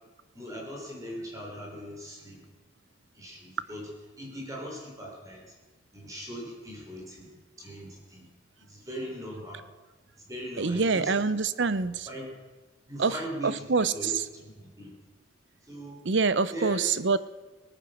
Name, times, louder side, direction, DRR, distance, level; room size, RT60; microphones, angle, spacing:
voice 1, 0.3-2.5 3.1-3.9 4.2-5.5 5.9-8.3 8.6-9.6 10.3-11.4 12.1-12.3 12.9-14.9 15.6-16.0 16.5-16.8, equal, 20° right, -2 dB, 3.7 m, -40 dB
voice 2, 10.6-12.1 13.0-13.1 13.4-14.2 16.1-17.2, right 4 dB, 65° right, 15 dB, 0.7 m, -25 dB
20.5 x 9.4 x 6.4 m, 1.2 s
head